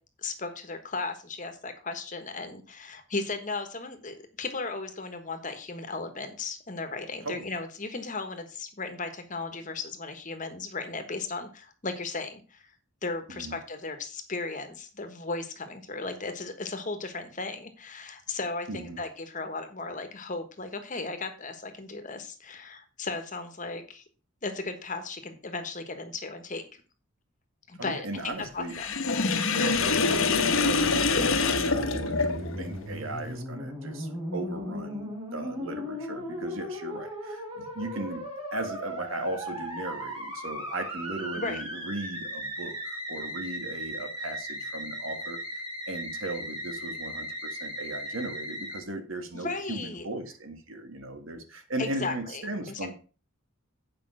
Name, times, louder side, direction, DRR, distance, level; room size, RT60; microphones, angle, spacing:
voice 1, 0.2-12.7 13.0-24.0 24.4-26.6 27.7-28.9 41.3-41.6 49.3-50.1 51.8-52.9, left 3 dB, 35° left, 7 dB, 1.3 m, -36 dB
voice 2, 18.7-19.0 27.8-28.8 29.5-52.9, right 2 dB, 70° right, 6 dB, 1.8 m, -37 dB
Sink (filling or washing), 28.7-32.7, left 4 dB, 70° left, 1.1 m, -25 dB
Musical instrument, 29.7-48.8, equal, 20° right, 5.8 m, -37 dB
8.6 x 5.3 x 6.2 m, 0.37 s
head